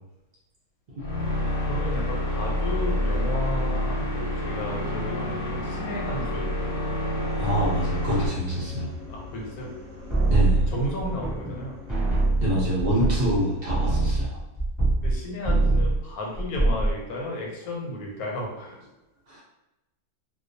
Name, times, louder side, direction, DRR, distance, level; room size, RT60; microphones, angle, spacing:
sound 1, 1.0-8.3, left 1 dB, 50° left, 0.7 m, -28 dB
voice 1, 1.7-6.5 9.1-9.7 10.7-11.8 15.0-18.8, left 1 dB, 85° left, -1 dB, 1.1 m, -33 dB
sound 2, 4.4-14.3, left 2 dB, 15° left, 0.5 m, -42 dB
voice 2, 7.4-8.9 10.3-10.7 12.4-14.4 19.3-19.4, right 1 dB, 55° right, -6 dB, 0.6 m, -26 dB
sound 3, 10.1-11.6 11.9-15.2 15.4-16.0 16.4-16.9, right 2 dB, 15° right, 0.9 m, -23 dB
2.3 x 2.2 x 2.5 m, 1.0 s
omnidirectional pair, 1.6 m